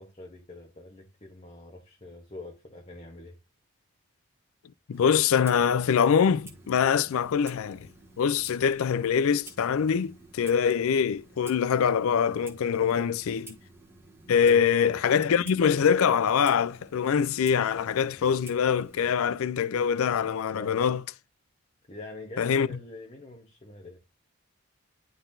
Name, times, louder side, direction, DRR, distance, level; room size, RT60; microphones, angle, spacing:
voice 1, 0.0-3.4 12.8-13.2 14.5-14.6 20.5-20.9 21.9-24.0, left 1 dB, 30° left, 0.9 m, -44 dB
voice 2, 4.9-7.9 8.2-13.5 14.3-21.0 22.4-22.7, left 7 dB, 70° left, 0.4 m, -24 dB
Clock, 4.9-19.3, right 2 dB, 10° right, 1.1 m, -51 dB
10.0 x 4.0 x 2.6 m
head